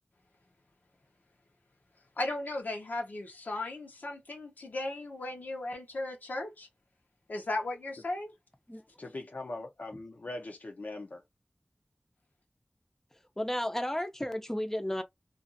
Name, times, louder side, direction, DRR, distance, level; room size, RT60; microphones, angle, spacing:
voice 1, 2.2-6.7 7.3-8.3, left 2 dB, 90° left, 0.9 m, -36 dB
voice 2, 9.0-11.2, left 2 dB, 70° left, 0.5 m, -41 dB
voice 3, 13.1-15.0, left 1 dB, 15° left, 0.5 m, -33 dB
2.5 x 2.4 x 2.6 m
wide cardioid pair, 60°, 3 cm